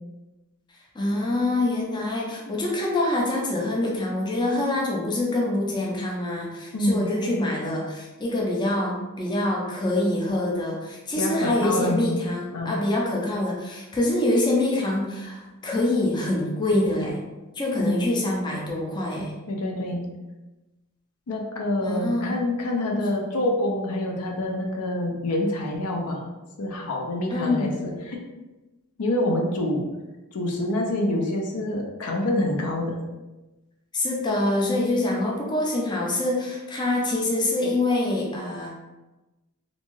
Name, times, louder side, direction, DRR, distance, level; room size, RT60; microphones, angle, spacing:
voice 1, 0.9-17.2 17.6-19.3 21.8-22.4 27.3-27.7 33.9-38.7, left 2 dB, 20° left, -2 dB, 0.4 m, -25 dB
voice 2, 6.7-7.2 11.2-12.2 12.5-12.8 17.8-18.0 19.5-20.1 21.3-26.3 26.6-28.2 29.0-29.9 30.3-33.0, left 1 dB, 80° left, 0 dB, 0.5 m, -26 dB
2.5 x 2.2 x 3.0 m, 1.1 s
head